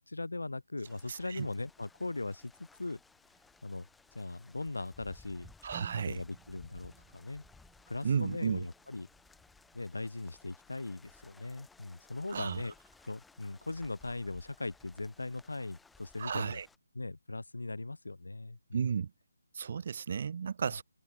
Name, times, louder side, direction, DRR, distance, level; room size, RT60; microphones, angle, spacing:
voice 1, 0.1-3.0 3.6-3.9 4.1-5.5 6.0-7.4 7.9-9.1 9.7-12.7 13.1-16.6 16.9-18.8, left 2 dB, 75° left, 2.8 m, -39 dB
sound 1, 0.8-16.8, left 4 dB, 5° left, 2.6 m, -60 dB
voice 2, 1.1-1.5 5.6-6.2 8.0-8.7 12.3-12.6 16.2-16.7 18.7-19.1 19.5-20.8, right 6 dB, 40° right, 0.7 m, -33 dB
sound 2, 5.7-9.7 10.1-10.4 11.0-11.3, right 40 dB or more, 15° right, 2.0 m, -55 dB
open air
figure-of-eight pair, 150°, 0 cm